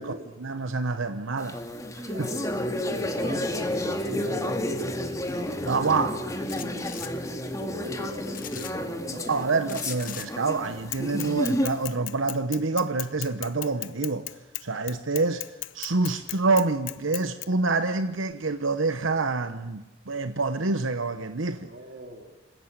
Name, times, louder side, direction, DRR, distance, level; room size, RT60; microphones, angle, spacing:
voice 1, 0.4-1.6 2.0-2.3 5.7-6.2 9.3-14.3 14.6-15.4 15.7-21.6, right 3 dB, 85° right, 1.1 m, -27 dB
sound 1, 1.4-11.9, left 1 dB, 15° left, 2.2 m, -31 dB
voice 2, 2.1-5.0 5.4-6.2 6.6-6.9 7.4-9.4 21.6-22.4, equal, 50° right, 3.2 m, -41 dB
sound 2, 6.5-7.1 8.3-8.7 9.7-10.3, left 11 dB, 45° left, 1.3 m, -39 dB
Bicycle / Mechanisms, 10.9-17.4, left 17 dB, 75° left, 0.9 m, -35 dB
27.0 x 16.5 x 8.9 m
head